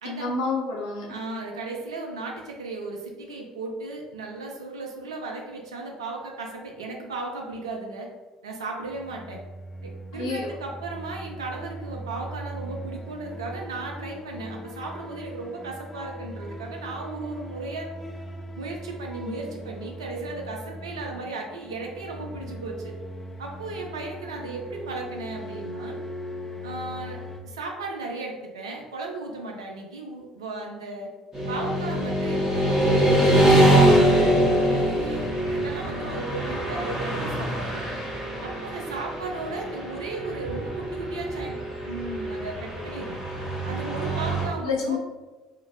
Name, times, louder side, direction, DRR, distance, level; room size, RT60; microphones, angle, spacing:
voice 1, 0.0-1.2 10.1-10.5 35.8-36.1 44.0-45.0, left 4 dB, 75° left, -2 dB, 0.6 m, -30 dB
voice 2, 1.1-8.1 8.4-9.4 9.8-17.9 18.6-22.9 23.4-26.0 26.6-31.1 31.5-34.4 34.6-37.8 38.4-41.6 41.8-43.2 43.7-45.0, right 3 dB, 80° right, 1 dB, 0.4 m, -35 dB
sound 1, 8.8-27.4, equal, 10° left, 0.4 m, -39 dB
Motorcycle / Traffic noise roadway noise, 31.3-44.5, right 1 dB, 20° right, 1.3 m, -23 dB
2.5 x 2.4 x 3.0 m, 1.2 s
figure-of-eight pair, 55°, 3 cm